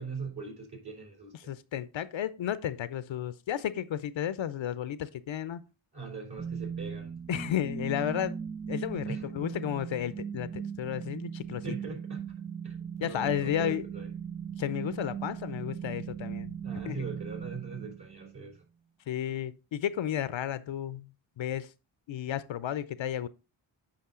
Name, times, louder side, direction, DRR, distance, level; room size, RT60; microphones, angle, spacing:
voice 1, 0.0-1.3 5.9-7.1 9.1-9.3 11.6-12.2 12.6-14.1 16.6-18.6, right 4 dB, 50° right, 3.2 m, -41 dB
voice 2, 1.5-5.6 7.3-8.4 8.7-11.6 13.0-13.8 14.6-16.6 16.8-17.1 19.1-21.1 21.4-21.7 22.1-23.3, left 10 dB, 65° left, 0.7 m, -33 dB
sound 1, 6.4-18.4, right 7 dB, 15° right, 0.4 m, -38 dB
8.7 x 5.3 x 3.7 m
cardioid pair, 60°, 49 cm